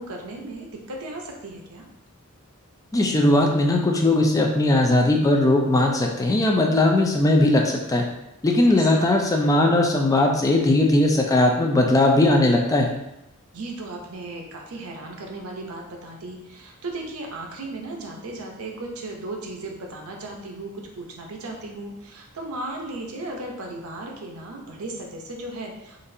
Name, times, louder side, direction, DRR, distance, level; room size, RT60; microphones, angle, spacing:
voice 1, 0.0-1.9 8.6-9.2 13.5-26.0, right 2 dB, 75° right, 1 dB, 0.6 m, -36 dB
voice 2, 2.9-8.1 8.4-12.9, left 1 dB, 15° left, 1 dB, 0.3 m, -19 dB
3.9 x 2.5 x 2.6 m, 0.89 s
head